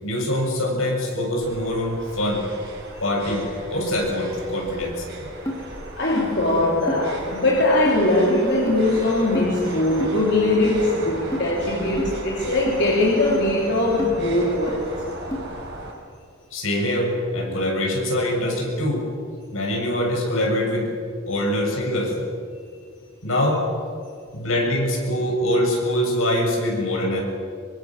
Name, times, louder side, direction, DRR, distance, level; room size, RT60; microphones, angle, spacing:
voice 1, 0.0-2.5 3.0-5.0 16.5-19.1 19.5-20.9 21.3-22.2 23.2-23.6 24.3-27.2, left 1 dB, 75° left, 6.8 m, -23 dB
sound 1, 1.4-15.9, right 1 dB, 50° right, 6.4 m, -36 dB
sound 2, 5.5-5.6 6.2-6.3 6.9-7.0 7.9-8.0 8.7-8.8 9.3-9.5 10.0-10.2 10.7-10.8 11.3-11.5 12.0-12.1 12.7-12.8 13.3-13.5 14.0-14.1 14.7-14.8 15.3-15.4, equal, 15° left, 3.1 m, -28 dB
voice 2, 6.0-14.9 24.0-24.2, left 1 dB, 55° left, 3.5 m, -21 dB
24.5 x 24.5 x 7.5 m
head